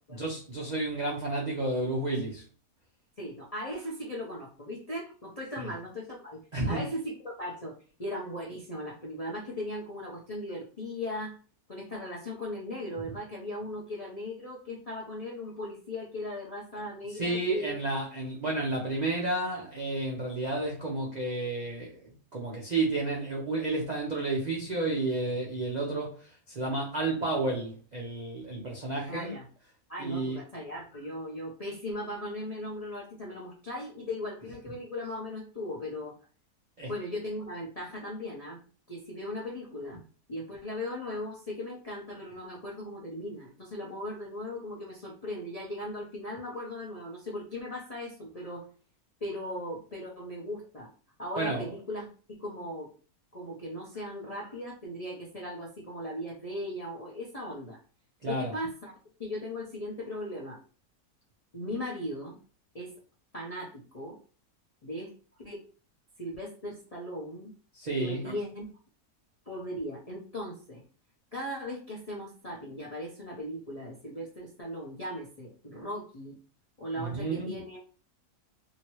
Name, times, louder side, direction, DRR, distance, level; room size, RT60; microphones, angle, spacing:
voice 1, 0.1-2.4 5.6-5.7 6.5-6.9 13.0-13.1 17.2-29.4 30.0-30.4 36.8-36.9 51.4-51.7 58.2-58.5 67.7-68.3 76.9-77.5, right 2 dB, 60° right, 0.4 m, -31 dB
voice 2, 3.2-11.4 11.7-17.8 29.1-29.4 29.9-36.1 36.9-38.6 38.9-40.0 40.3-48.7 49.2-50.9 51.2-52.1 52.4-52.9 53.3-57.8 58.2-58.9 59.2-60.6 61.5-62.4 62.7-62.9 63.3-64.2 64.8-65.1 65.4-65.6 66.2-67.5 68.0-68.6 69.5-70.8 71.3-76.4 76.8-77.8, left 1 dB, 45° left, 0.5 m, -38 dB
2.9 x 2.8 x 3.0 m
omnidirectional pair, 1.7 m